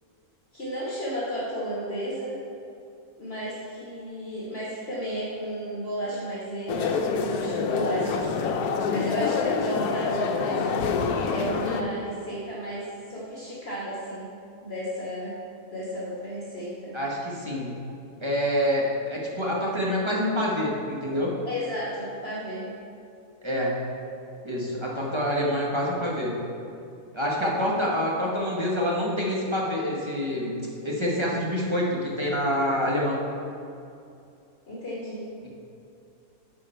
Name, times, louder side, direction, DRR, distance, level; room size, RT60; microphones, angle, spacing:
voice 1, 0.5-2.4 3.2-8.6 8.9-10.8 11.3-14.3 14.6-15.4 15.7-17.0 21.4-22.7 34.7-35.3, right 1 dB, 45° left, -7 dB, 1.5 m, -33 dB
sound 1, 6.7-11.8, left 5 dB, 80° left, 1.1 m, -26 dB
voice 2, 16.9-17.8 18.2-21.3 23.4-23.7 24.4-26.4 27.1-33.2 35.4-35.5, equal, 20° right, -4 dB, 1.1 m, -27 dB
9.6 x 4.9 x 4.4 m, 2.6 s
omnidirectional pair, 1.6 m